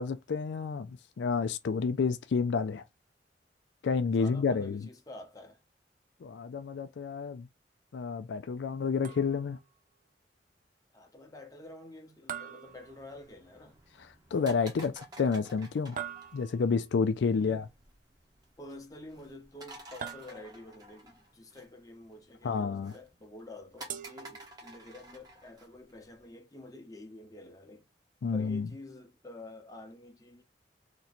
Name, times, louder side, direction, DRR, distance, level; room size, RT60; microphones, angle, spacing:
voice 1, 0.0-2.8 3.8-4.9 6.2-7.5 7.9-9.6 14.0-16.0 16.3-17.6 22.4-22.9 28.2-28.7, left 5 dB, 75° left, 0.4 m, -30 dB
voice 2, 4.1-5.6 10.9-13.8 17.3-17.7 18.6-27.9 28.3-30.4, left 2 dB, 20° left, 0.8 m, -49 dB
sound 1, 9.0-9.7 12.3-13.5 16.0-16.8 20.0-20.8 23.9-24.9, right 9 dB, 45° right, 0.4 m, -43 dB
sound 2, 12.6-26.3, right 1 dB, 20° right, 0.9 m, -53 dB
3.0 x 2.7 x 4.2 m
head